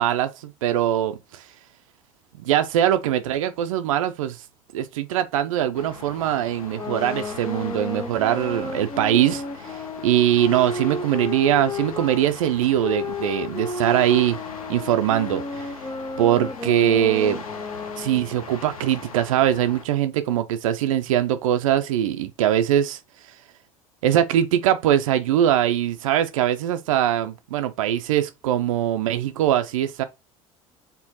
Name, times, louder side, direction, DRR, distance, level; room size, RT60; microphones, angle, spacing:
voice 1, 0.0-1.4 2.4-4.4 4.7-14.4 14.7-15.7 16.2-17.4 18.0-23.0 24.0-30.0, right 11 dB, 70° right, 0.5 m, -22 dB
sound 1, 5.7-19.9, left 5 dB, 80° left, 0.8 m, -40 dB
sound 2, 6.6-12.2 12.8-18.4, left 3 dB, 20° left, 0.7 m, -32 dB
4.4 x 3.6 x 2.8 m
figure-of-eight pair, 70°, 18 cm